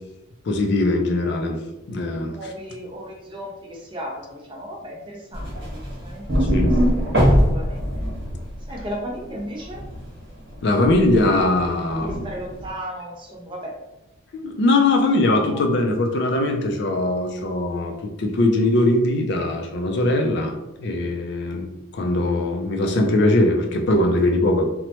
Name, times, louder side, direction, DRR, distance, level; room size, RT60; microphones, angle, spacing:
voice 1, 0.5-1.6 1.9-2.4 6.4-6.7 10.6-12.3 14.3-17.9 18.2-21.6 21.9-24.7, left 2 dB, 55° left, 3 dB, 0.3 m, -21 dB
voice 2, 2.2-6.7 7.4-8.0 8.7-9.8 11.9-13.7 15.2-15.6, equal, 25° right, -1 dB, 0.5 m, -35 dB
sound 1, 5.3-10.1 10.4-12.7, equal, 55° right, 1.1 m, -23 dB
3.0 x 2.0 x 2.8 m, 0.96 s
head